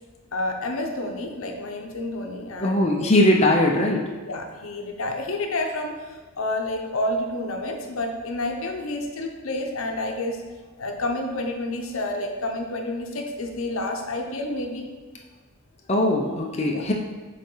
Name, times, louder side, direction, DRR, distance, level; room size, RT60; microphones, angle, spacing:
voice 1, 0.3-2.9 4.3-10.4 10.8-14.9 16.7-16.9, left 1 dB, 75° left, 3 dB, 0.8 m, -29 dB
voice 2, 2.6-4.0 15.9-16.9, left 1 dB, 30° left, 0 dB, 0.6 m, -20 dB
6.7 x 4.1 x 3.8 m, 1.4 s
head